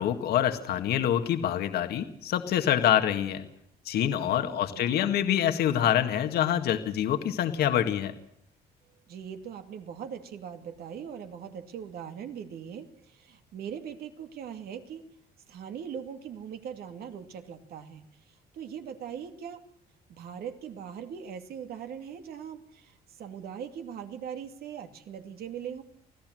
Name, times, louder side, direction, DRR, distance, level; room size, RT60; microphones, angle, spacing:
voice 1, 0.0-3.4 3.9-8.1, left 10 dB, 70° left, 7 dB, 1.9 m, -26 dB
voice 2, 4.2-5.4 9.1-15.1 15.5-19.6 20.1-25.8, right 8 dB, 65° right, 7 dB, 2.5 m, -41 dB
25.0 x 16.0 x 7.8 m, 0.75 s
cardioid pair, 110°, 17 cm